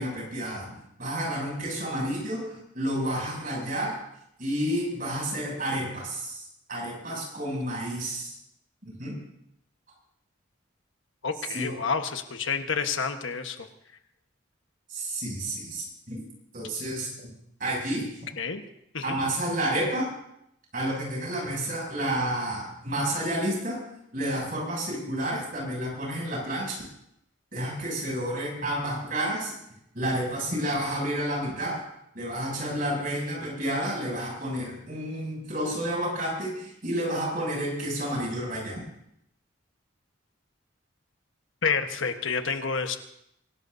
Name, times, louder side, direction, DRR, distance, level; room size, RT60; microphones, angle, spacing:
voice 1, 0.0-4.0 4.4-6.4 6.7-8.3 8.8-9.2 11.5-11.8 14.9-16.2 16.5-17.1 17.6-18.2 19.0-20.1 20.7-23.9 24.1-26.9 27.5-29.5 29.9-31.8 32.1-38.8, right 1 dB, 45° right, -2 dB, 7.0 m, -30 dB
voice 2, 11.2-13.7 18.4-18.6 18.9-19.2 41.6-43.0, left 5 dB, 75° left, 6 dB, 1.3 m, -29 dB
24.5 x 17.5 x 2.7 m, 0.78 s
head